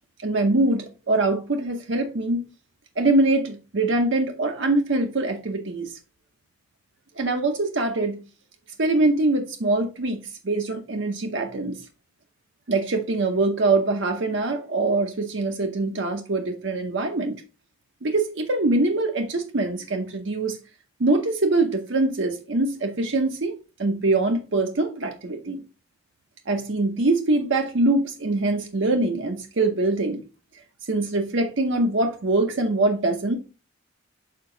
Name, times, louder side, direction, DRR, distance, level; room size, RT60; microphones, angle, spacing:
voice 1, 0.2-2.4 3.0-5.9 7.2-8.2 8.8-11.8 12.7-17.4 18.0-20.6 21.0-23.5 23.8-25.6 26.5-30.2 30.9-33.4, right 2 dB, 65° right, 0.8 m, -23 dB
6.7 x 4.7 x 3.8 m
head